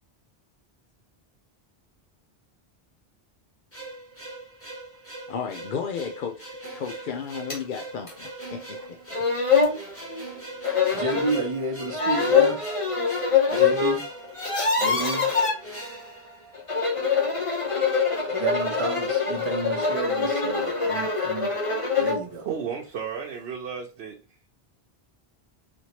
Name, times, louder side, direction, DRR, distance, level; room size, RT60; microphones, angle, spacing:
sound 1, 3.7-17.0, right 2 dB, 15° left, 1.2 m, -41 dB
voice 1, 5.3-8.8 9.1-9.2, left 6 dB, 60° left, 0.7 m, -33 dB
sound 2, 7.5-7.6 8.1-8.2 8.8-8.9 9.1-9.8 10.6-11.4 11.9-14.0 14.2-15.5 16.5-22.2, left 5 dB, 35° left, 1.0 m, -24 dB
voice 2, 10.9-12.6 13.5-14.1 14.8-15.3 18.3-21.5 22.0-22.5, right 3 dB, 35° right, 0.7 m, -31 dB
voice 3, 22.4-24.2, right 7 dB, 75° right, 0.9 m, -33 dB
4.2 x 3.0 x 2.8 m
omnidirectional pair, 1.1 m